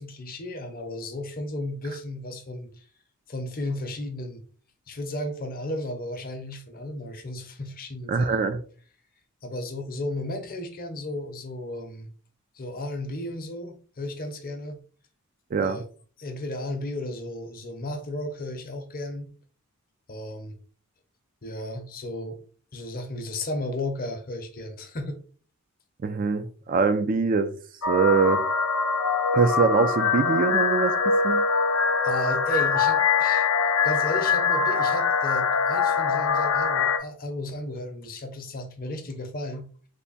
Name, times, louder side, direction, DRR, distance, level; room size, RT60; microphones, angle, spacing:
voice 1, 0.0-2.8 3.3-4.4 4.9-8.3 9.4-12.1 12.5-14.8 15.6-15.8 16.2-19.3 20.1-20.6 21.4-22.4 22.7-25.2 32.0-33.5 33.8-39.7, left 1 dB, 40° left, 0.7 m, -34 dB
voice 2, 8.1-8.6 15.5-15.8 26.0-27.6 27.9-28.4 29.3-31.4, right 4 dB, 40° right, 0.3 m, -23 dB
sound 1, 27.8-37.0, left 5 dB, 80° left, 0.6 m, -23 dB
3.4 x 2.1 x 3.9 m
head